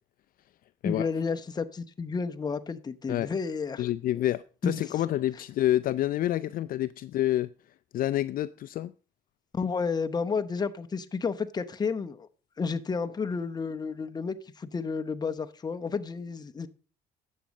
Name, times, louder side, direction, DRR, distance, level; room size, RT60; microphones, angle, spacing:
voice 1, 0.8-3.8 4.6-4.8 9.5-12.3 12.6-16.7, left 5 dB, 25° left, 0.9 m, -31 dB
voice 2, 3.8-7.5 7.9-8.9, left 13 dB, 55° left, 0.4 m, -28 dB
10.5 x 7.6 x 5.2 m
cardioid pair, 110°, 17 cm